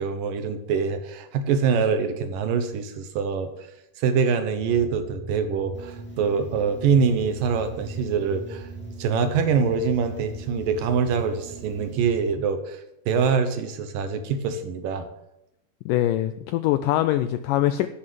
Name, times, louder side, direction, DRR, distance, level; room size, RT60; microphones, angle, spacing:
voice 1, 0.0-3.5 4.0-8.7 9.0-12.8 13.1-15.1, right 6 dB, 70° right, 9 dB, 2.4 m, -24 dB
sound 1, 4.6-12.4, right 2 dB, 40° right, 5.8 m, -40 dB
sound 2, 5.7-12.0, right 4 dB, 5° left, 0.8 m, -46 dB
voice 2, 15.9-17.9, left 13 dB, 85° left, 11 dB, 1.9 m, -23 dB
11.0 x 6.8 x 9.3 m, 0.85 s
omnidirectional pair, 4.4 m